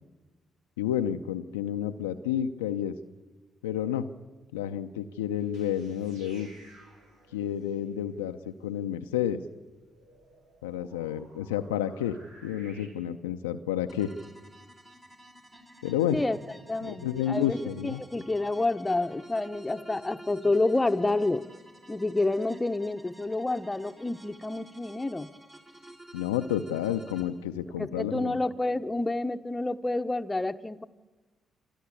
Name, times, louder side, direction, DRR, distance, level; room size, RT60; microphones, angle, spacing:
voice 1, 0.8-2.9 3.6-4.1 4.5-6.5 7.3-9.4 10.6-14.2 15.8-16.2 16.8-18.0 26.1-28.4, left 10 dB, 90° left, 7 dB, 0.6 m, -30 dB
sound 1, 5.4-12.9, right 1 dB, 80° right, 3.7 m, -57 dB
sound 2, 13.9-27.2, right 1 dB, 30° right, 3.8 m, -51 dB
voice 2, 16.7-21.5 21.9-25.3 27.8-30.8, left 2 dB, 20° left, 8 dB, 1.0 m, -29 dB
27.5 x 12.0 x 8.4 m, 1.2 s
hypercardioid pair, 45°, 0 cm